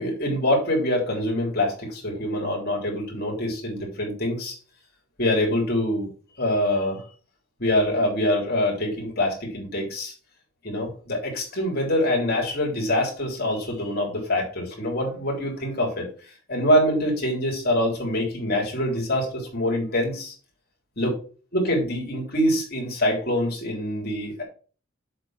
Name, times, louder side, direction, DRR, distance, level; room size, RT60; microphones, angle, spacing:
voice 1, 0.0-4.6 5.2-6.1 6.4-7.0 7.6-10.1 10.6-16.1 16.5-20.3 21.0-21.1 21.5-24.4, left 1 dB, 45° left, -2 dB, 3.5 m, -25 dB
7.5 x 4.6 x 6.2 m, 0.39 s
head